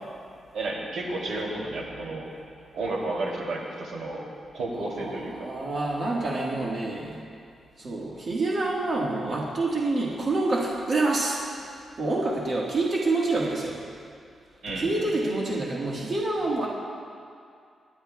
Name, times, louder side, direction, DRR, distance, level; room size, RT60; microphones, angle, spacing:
voice 1, 0.5-2.3 2.7-4.3 4.5-5.5 14.6-15.1, right 2 dB, 85° right, -2 dB, 2.6 m, -32 dB
voice 2, 4.9-7.2 7.8-13.8 14.8-16.7, right 2 dB, 45° right, -4 dB, 1.5 m, -27 dB
25.0 x 11.0 x 2.3 m, 2.3 s
wide cardioid pair, 155°, 0 cm